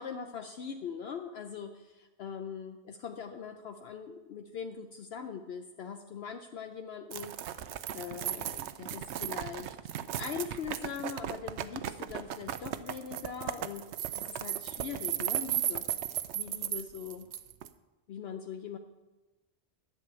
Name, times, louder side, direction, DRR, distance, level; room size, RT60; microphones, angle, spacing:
voice 1, 0.0-7.6 7.9-9.9 10.2-15.9 16.3-17.3 18.1-18.8, left 7 dB, 70° left, 6 dB, 0.9 m, -41 dB
sound 1, 7.1-17.7, right 11 dB, 85° right, 0.9 m, -36 dB
11.0 x 6.7 x 8.9 m, 1.1 s
omnidirectional pair, 1.1 m